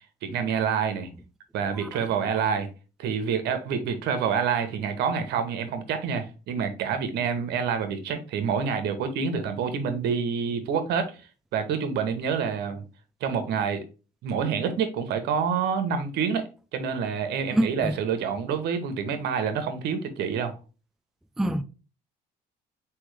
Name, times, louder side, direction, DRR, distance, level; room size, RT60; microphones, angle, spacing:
voice 1, 0.2-1.1 1.5-2.7 3.0-11.2 11.5-12.8 13.2-13.8 14.2-20.6, right 6 dB, 80° right, 0.9 m, -27 dB
voice 2, 17.5-17.9 21.4-21.6, right 1 dB, ahead, 0.3 m, -25 dB
4.2 x 3.4 x 3.2 m
cardioid pair, 110°, 17 cm